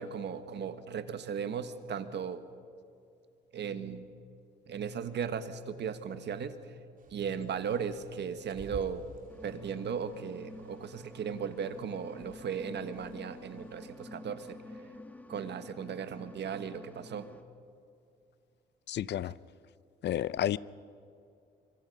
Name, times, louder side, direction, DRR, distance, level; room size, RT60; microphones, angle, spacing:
voice 1, 0.0-2.4 3.5-4.1 4.7-6.7 7.1-9.0 9.4-14.7 15.3-17.3, right 7 dB, 60° right, 1.5 m, -37 dB
Bird, 7.0-14.0, right 4 dB, 45° right, 2.9 m, -53 dB
sound 1, 9.3-17.4, left 2 dB, 5° left, 1.7 m, -50 dB
voice 2, 18.9-19.4 20.0-20.6, left 11 dB, 60° left, 0.6 m, -31 dB
25.5 x 24.0 x 5.5 m
cardioid pair, 90°, 20 cm